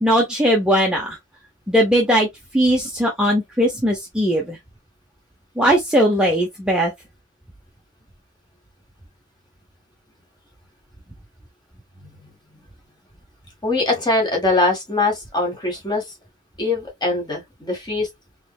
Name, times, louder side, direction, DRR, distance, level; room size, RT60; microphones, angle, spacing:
voice 1, 0.0-1.2 1.7-2.3 2.5-4.6 5.6-6.9, equal, 5° right, 0.8 m, -19 dB
voice 2, 13.6-16.0 16.6-18.1, left 2 dB, 20° left, 1.8 m, -22 dB
4.0 x 3.2 x 2.3 m
head